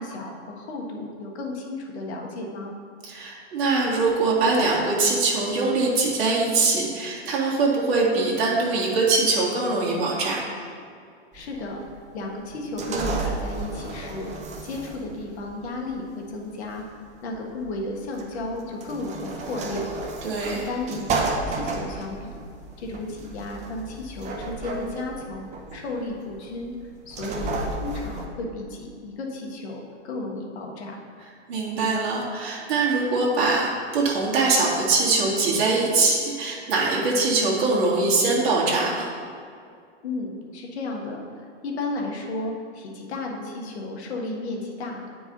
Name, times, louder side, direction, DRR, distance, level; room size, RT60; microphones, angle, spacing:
voice 1, 0.0-2.7 11.3-11.8 12.1-14.3 14.6-21.0 21.5-22.3 22.8-26.7 27.0-27.5 27.8-31.0 40.0-45.0, left 2 dB, 70° left, 0 dB, 1.6 m, -33 dB
voice 2, 3.0-10.4 20.2-20.6 31.5-39.1, right 3 dB, 60° right, -4 dB, 1.9 m, -22 dB
sound 1, 11.3-28.3, right 3 dB, 20° right, 0.7 m, -33 dB
9.1 x 4.8 x 3.9 m, 2.2 s
hypercardioid pair, 130°, 34 cm